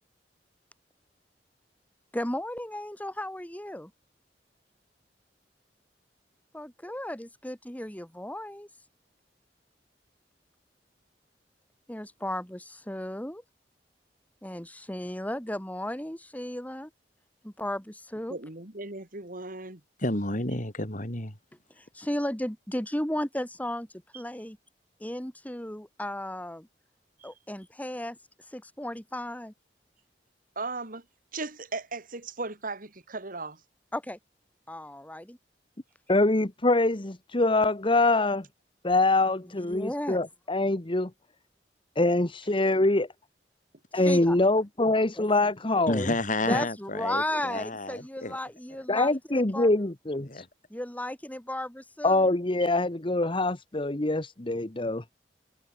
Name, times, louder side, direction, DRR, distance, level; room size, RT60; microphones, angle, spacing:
voice 1, 2.1-3.9 6.5-8.7 11.9-13.4 14.4-16.9 17.4-18.4 21.8-23.9 24.1-24.6 25.0-26.7 27.2-28.2 28.5-29.5 33.9-34.2 34.7-35.4 39.5-40.2 44.0-44.4 45.2-45.3 46.5-49.7 50.7-52.3, left 1 dB, 10° left, 2.5 m, -35 dB
voice 2, 18.3-19.8 27.2-27.3 30.6-31.0 31.3-33.6 47.1-47.4 52.6-52.7, right 3 dB, 50° right, 3.5 m, -37 dB
voice 3, 20.0-21.4 45.9-48.4 50.2-50.5, left 2 dB, 45° left, 5.4 m, -31 dB
voice 4, 36.1-38.4 38.8-41.1 42.0-43.1 43.9-46.1 48.9-50.3 52.0-55.0, left 2 dB, 30° left, 1.3 m, -24 dB
head